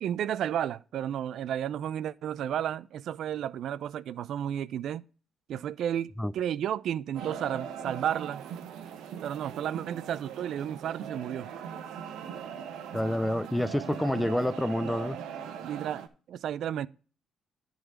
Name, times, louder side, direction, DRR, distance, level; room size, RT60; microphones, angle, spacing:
voice 1, 0.0-5.0 5.5-8.4 9.2-11.5 15.6-16.0 16.3-16.9, right 10 dB, 75° right, 0.4 m, -32 dB
sound 1, 7.1-16.1, right 8 dB, 90° right, 0.9 m, -40 dB
voice 2, 12.9-15.2, left 1 dB, 5° left, 0.5 m, -28 dB
10.5 x 4.0 x 6.3 m
cardioid pair, 90°, 0 cm